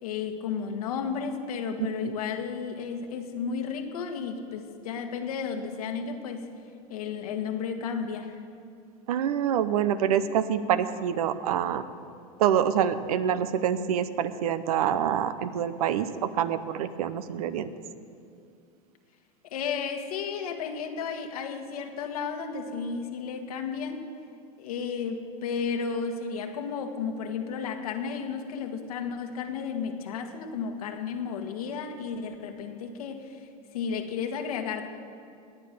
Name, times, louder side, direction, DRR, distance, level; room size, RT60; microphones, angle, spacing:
voice 1, 0.0-6.5 6.9-8.4 19.4-24.1 24.6-34.9, left 6 dB, 85° left, 5 dB, 1.6 m, -33 dB
voice 2, 9.1-11.8 12.4-17.7, right 9 dB, 85° right, 13 dB, 0.8 m, -26 dB
17.5 x 9.8 x 6.8 m, 2.4 s
supercardioid pair, 110°, 19 cm